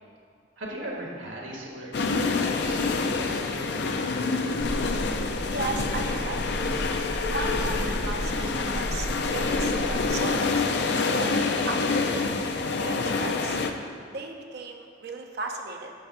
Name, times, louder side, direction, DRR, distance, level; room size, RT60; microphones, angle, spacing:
voice 1, 0.6-3.7, right 1 dB, 90° right, -2 dB, 1.6 m, -39 dB
sound 1, 1.9-13.7, left 4 dB, 60° left, 0.5 m, -27 dB
sound 2, 4.6-10.1, equal, 20° right, 0.5 m, -34 dB
voice 2, 5.5-6.4 7.3-13.6 14.1-15.9, right 3 dB, 55° right, 3 dB, 0.7 m, -36 dB
8.3 x 3.4 x 6.7 m, 2.1 s
head